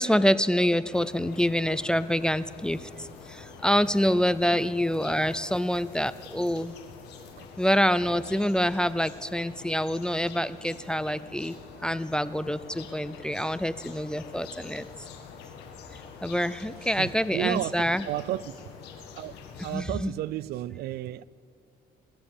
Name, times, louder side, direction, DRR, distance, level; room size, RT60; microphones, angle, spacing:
voice 1, 0.0-6.8 7.6-11.6 11.8-14.9 16.2-18.0 19.7-20.1, equal, 5° left, 0.3 m, -26 dB
sound 1, 0.9-19.8, left 6 dB, 85° left, 1.8 m, -46 dB
voice 2, 16.8-18.5 19.2-19.4 19.6-21.2, right 14 dB, 70° right, 0.4 m, -33 dB
20.5 x 7.2 x 8.7 m
cardioid pair, 110°, 17 cm